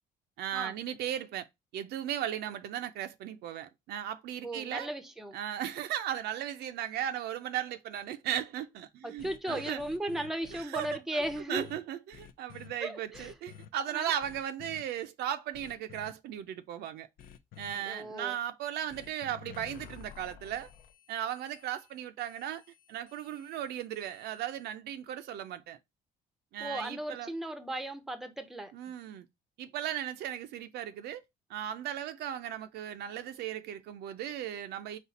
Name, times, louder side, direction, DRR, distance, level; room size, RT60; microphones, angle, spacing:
voice 1, 0.4-1.5 1.7-4.9 5.3-9.8 10.5-11.2 11.5-17.1 17.6-20.7 21.1-22.6 22.9-25.8 26.5-27.3 28.7-29.3 29.6-31.2 31.5-35.0, right 10 dB, 75° right, 0.5 m, -36 dB
voice 2, 4.4-5.4 9.0-11.7 12.8-13.3 13.9-14.1 17.9-18.4 26.6-28.7, right 1 dB, ahead, 0.6 m, -36 dB
sound 1, 9.2-11.8 12.1-12.7 13.1-13.7 14.2-14.8 15.5-16.1 17.2-17.7 18.9-24.7, left 9 dB, 60° left, 0.5 m, -52 dB
4.2 x 2.3 x 4.0 m
cardioid pair, 110°, 17 cm